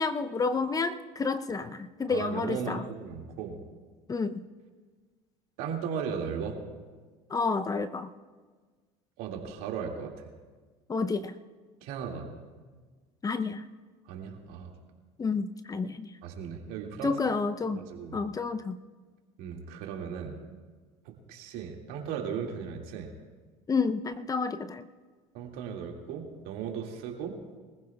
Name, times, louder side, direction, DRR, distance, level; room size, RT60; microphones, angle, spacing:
voice 1, 0.0-2.8 4.1-4.4 7.3-8.1 10.9-11.3 13.2-13.6 15.2-16.1 17.0-17.8 18.1-18.8 23.7-24.8, left 4 dB, 25° left, 11 dB, 0.6 m, -30 dB
voice 2, 2.1-3.6 5.6-6.6 9.2-10.1 11.8-12.3 14.1-14.7 16.2-17.1 17.7-18.2 19.4-20.4 21.1-23.1 25.3-27.4, right 7 dB, 70° right, 1 dB, 2.2 m, -36 dB
23.0 x 15.5 x 2.3 m, 1.4 s
supercardioid pair, 85°, 16 cm